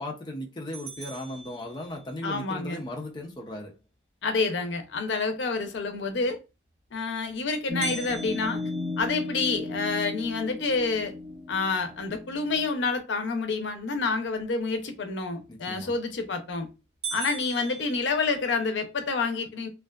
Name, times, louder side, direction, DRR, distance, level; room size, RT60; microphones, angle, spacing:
voice 1, 0.0-3.7 15.5-15.9, left 1 dB, 25° left, 0.4 m, -37 dB
sound 1, 0.7-2.3 7.8-10.0 10.5-10.6 11.1-11.2 11.8-12.2 15.8-16.2 16.6-16.7 17.0-18.8, right 4 dB, 65° right, 1.3 m, -40 dB
voice 2, 2.2-2.8 4.2-6.4 6.9-8.6 9.0-11.1 11.5-16.7 17.1-19.7, left 4 dB, 85° left, 0.5 m, -28 dB
sound 2, 7.7-12.7, left 2 dB, 40° right, 1.0 m, -35 dB
2.5 x 2.3 x 2.2 m
head